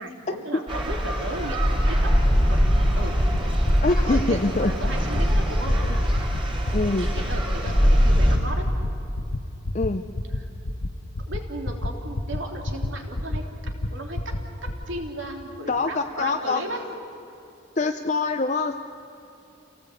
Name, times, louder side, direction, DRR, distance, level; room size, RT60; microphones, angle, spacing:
voice 1, 0.0-1.6 1.9-2.2 2.5-2.6 3.0-3.2 4.0-5.8 7.0-8.6 10.4-10.5 11.2-13.4 13.9-16.8, right 1 dB, 70° right, 2 dB, 3.1 m, -35 dB
sound 1, 0.7-8.4, equal, 25° right, 4.2 m, -22 dB
sound 2, 2.2-2.4 2.7-2.9 3.2-3.4 3.7-3.9 4.2-4.4 4.7-4.9 5.2-5.4 5.7-5.9 6.2-6.4 6.7-6.9 7.2-7.4 7.7-7.9 8.2-8.4 8.7-8.9 9.2-9.4 9.7-9.9 10.2-10.4 10.7-10.9 11.2-11.4 11.7-11.9 12.2-12.4 12.7-12.9 13.2-13.4 13.7-13.9 14.2-14.4 14.7-14.8, left 2 dB, 80° left, 1.0 m, -27 dB
voice 2, 3.8-4.8 5.8-6.0 6.7-7.1 9.7-10.0 15.7-16.7 17.8-18.7, left 3 dB, 35° left, 5 dB, 0.6 m, -24 dB
28.0 x 18.0 x 8.4 m, 2.7 s
head